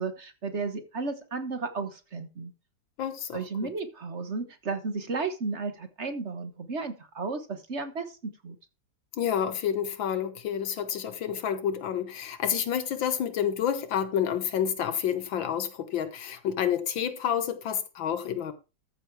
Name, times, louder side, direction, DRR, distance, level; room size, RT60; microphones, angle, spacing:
voice 1, 0.0-2.5 3.3-8.6, right 4 dB, 40° right, 1.3 m, -33 dB
voice 2, 3.0-3.7 9.2-18.5, left 9 dB, 75° left, 1.7 m, -29 dB
14.0 x 6.4 x 4.7 m
omnidirectional pair, 2.2 m